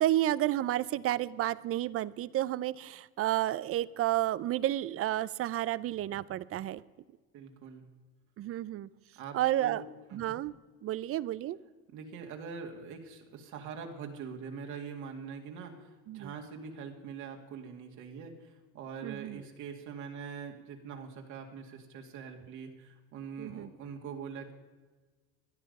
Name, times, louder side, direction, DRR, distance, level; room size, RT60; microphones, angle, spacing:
voice 1, 0.0-6.8 8.4-8.9 9.3-9.8 10.1-10.5 10.8-11.6 16.1-16.3 19.0-19.4 23.4-23.7, right 14 dB, 45° right, 19 dB, 0.6 m, -31 dB
voice 2, 7.3-7.8 9.2-9.8 10.1-10.4 11.9-24.5, right 6 dB, 65° right, 2 dB, 2.4 m, -43 dB
18.0 x 11.5 x 5.4 m, 1.3 s
supercardioid pair, 110°, 32 cm